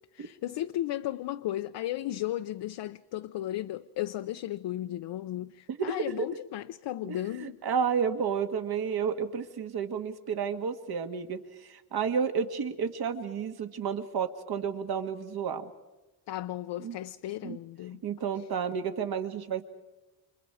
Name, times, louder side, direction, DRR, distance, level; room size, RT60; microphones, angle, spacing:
voice 1, 0.1-7.6 16.3-18.0 18.3-18.5, left 13 dB, 80° left, 0.7 m, -35 dB
voice 2, 7.0-15.7 16.8-16.9 17.4-17.6 18.0-19.6, right 6 dB, 65° right, 1.9 m, -31 dB
29.5 x 27.0 x 4.9 m
cardioid pair, 125°, 41 cm